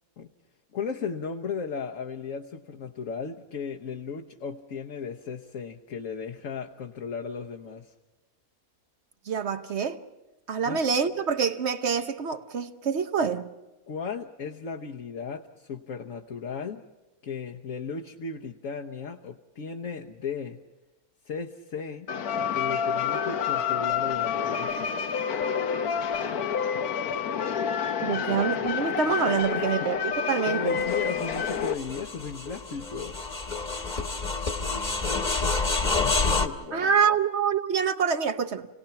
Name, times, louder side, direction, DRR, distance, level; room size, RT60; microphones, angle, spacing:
voice 1, 0.7-7.9 10.7-10.8 13.9-16.8 17.2-20.6 21.3-22.1 22.5-24.7 28.1-28.4 29.6-29.8 30.5-33.2 36.0-37.0, left 5 dB, 65° left, 1.3 m, -35 dB
voice 2, 9.3-10.0 10.5-13.5 28.0-30.8 36.7-38.7, right 6 dB, 55° right, 1.1 m, -26 dB
sound 1, 22.1-31.7, left 7 dB, 80° left, 1.5 m, -28 dB
sound 2, 30.8-36.5, left 3 dB, 30° left, 1.4 m, -28 dB
29.5 x 18.0 x 5.8 m
omnidirectional pair, 1.6 m